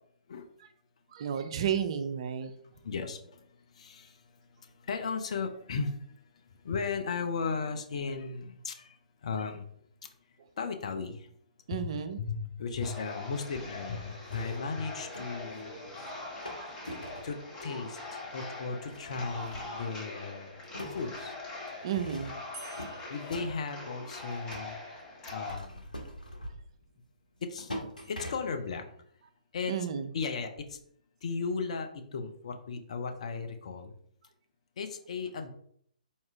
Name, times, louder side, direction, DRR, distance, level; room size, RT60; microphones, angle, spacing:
voice 1, 1.1-2.5 11.7-12.2 16.0-16.1 16.6-16.7 21.8-22.3 29.7-30.1, right 8 dB, 40° right, 9 dB, 0.4 m, -32 dB
voice 2, 2.8-3.5 3.7-4.2 4.6-6.2 6.6-9.0 9.2-9.7 10.6-11.3 11.7-16.1 17.2-20.5 20.9-21.4 22.5-24.8 25.2-25.8 27.4-27.7 28.1-28.8 29.5-29.8 30.1-30.8 31.2-33.9 34.8-35.5, left 5 dB, 50° left, 6 dB, 0.5 m, -36 dB
sound 1, 12.8-25.6, left 2 dB, 15° left, 0.9 m, -42 dB
sound 2, 14.3-15.6 16.4-17.4 18.1-18.2 18.9-20.2 20.5-24.8 25.3-26.8 27.4-28.7, equal, 80° left, 0.9 m, -44 dB
sound 3, 22.5-24.5 28.0-29.0, right 2 dB, 15° right, 1.1 m, -53 dB
4.1 x 2.4 x 3.4 m, 0.67 s
figure-of-eight pair, 130°, 4 cm